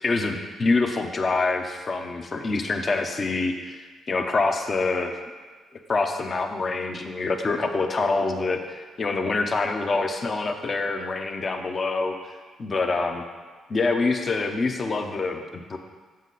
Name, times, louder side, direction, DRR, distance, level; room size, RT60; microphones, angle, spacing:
voice 1, 0.0-5.1 5.9-12.1 12.6-13.2 13.7-15.8, left 3 dB, 35° left, 5 dB, 0.8 m, -26 dB
7.9 x 7.5 x 4.1 m, 1.4 s
cardioid pair, 90°, 0 cm